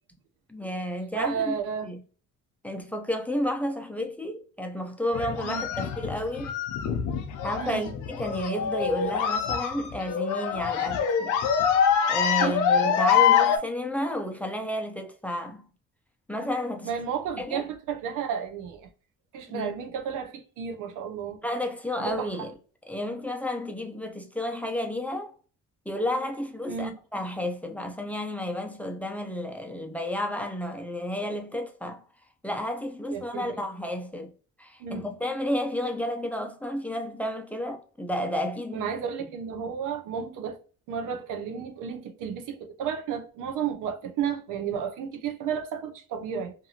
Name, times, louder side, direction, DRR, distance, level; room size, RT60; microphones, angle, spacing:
voice 1, 0.5-1.6 1.8-2.0 2.6-6.6 7.4-11.4 12.1-15.7 16.3-16.9 17.4-17.6 19.5-19.7 21.4-22.5 22.9-25.3 25.9-32.0 32.4-34.3 34.6-38.9, left 1 dB, 5° left, 0.5 m, -31 dB
voice 2, 1.1-1.9 5.4-5.7 7.6-7.9 12.4-12.6 16.8-18.9 19.3-21.4 22.0-22.5 26.7-27.0 33.1-33.5 34.8-35.1 38.7-40.6 40.9-46.5, right 7 dB, 90° right, 0.7 m, -32 dB
sound 1, 5.1-13.6, left 7 dB, 85° left, 0.6 m, -25 dB
2.6 x 2.6 x 2.7 m
cardioid pair, 90°, 30 cm